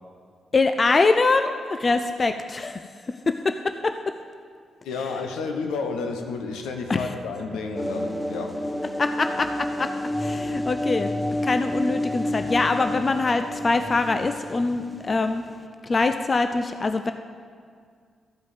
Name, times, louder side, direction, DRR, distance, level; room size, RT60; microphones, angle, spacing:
voice 1, 0.5-4.1 6.9-7.1 9.0-9.9 10.2-11.1 11.4-15.4 15.8-17.1, left 3 dB, 40° left, 8 dB, 0.5 m, -24 dB
voice 2, 4.8-8.6, left 4 dB, 80° left, 5 dB, 0.9 m, -31 dB
Bowed string instrument, 5.3-10.1, right 2 dB, 45° right, 1.4 m, -50 dB
sound 1, 7.7-15.6, left 1 dB, 5° left, 0.8 m, -30 dB
13.5 x 5.1 x 7.3 m, 2.1 s
hypercardioid pair, 40°, 0 cm